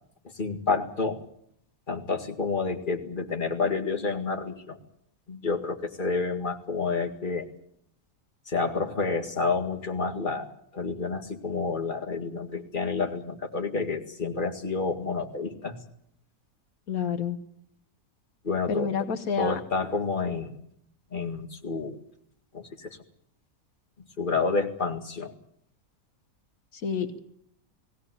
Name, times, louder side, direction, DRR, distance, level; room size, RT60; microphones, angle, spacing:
voice 1, 0.3-1.2 1.9-4.8 5.3-7.5 8.5-15.8 18.4-18.9 19.4-20.5 21.1-22.0 22.5-22.9 24.2-25.3 27.0-27.2, left 4 dB, 35° left, 3 dB, 2.2 m, -29 dB
voice 2, 16.9-17.4 18.7-19.6 26.7-27.2, left 7 dB, 70° left, 9 dB, 1.5 m, -29 dB
19.5 x 17.0 x 9.8 m, 0.72 s
omnidirectional pair, 1.6 m